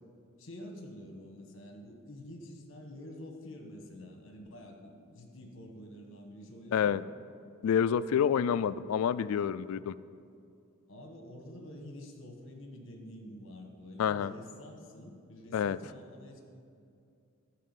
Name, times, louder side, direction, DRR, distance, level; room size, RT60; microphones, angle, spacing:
voice 1, 0.4-7.0 10.9-16.4, left 1 dB, 60° left, 3 dB, 1.3 m, -48 dB
voice 2, 6.7-7.0 7.6-9.9 14.0-14.3 15.5-15.8, left 8 dB, 80° left, 16 dB, 0.3 m, -28 dB
11.5 x 4.7 x 8.3 m, 2.5 s
head